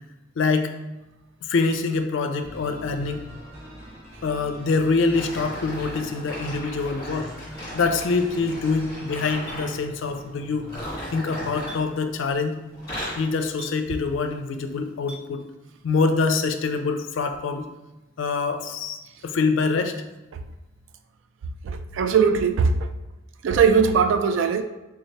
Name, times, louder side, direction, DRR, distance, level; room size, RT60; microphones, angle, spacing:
voice 1, 0.4-0.7 1.4-3.2 4.2-7.3 7.7-10.7 11.1-12.6 13.2-15.4 15.8-17.7 18.2-19.9, left 4 dB, 65° left, 7 dB, 0.4 m, -25 dB
sound 1, 2.4-12.2, equal, 30° right, 1.0 m, -43 dB
sound 2, 5.1-9.8 10.6-12.4 12.7-13.3 13.9-14.1 14.8-14.9, equal, 20° left, 1.3 m, -37 dB
Chink clink, 9.5-9.6 11.7-11.8 13.6-13.8 15.1-15.2, left 1 dB, 10° right, 1.4 m, -40 dB
voice 2, 21.6-22.9 23.4-24.6, right 6 dB, 70° right, 8 dB, 0.3 m, -20 dB
3.6 x 3.1 x 2.8 m, 1.0 s
head